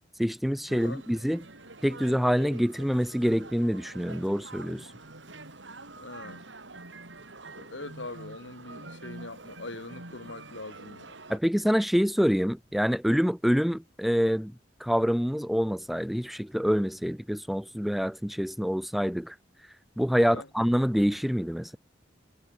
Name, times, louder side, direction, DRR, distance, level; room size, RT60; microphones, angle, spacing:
voice 1, 0.2-1.4 1.8-4.9 11.3-14.5 14.8-19.3 20.0-21.8, equal, ahead, 0.4 m, -26 dB
sound 1, 0.7-11.4, right 2 dB, 85° right, 5.7 m, -46 dB
voice 2, 6.0-6.5 7.6-11.2 20.2-20.5, left 2 dB, 85° left, 5.5 m, -42 dB
head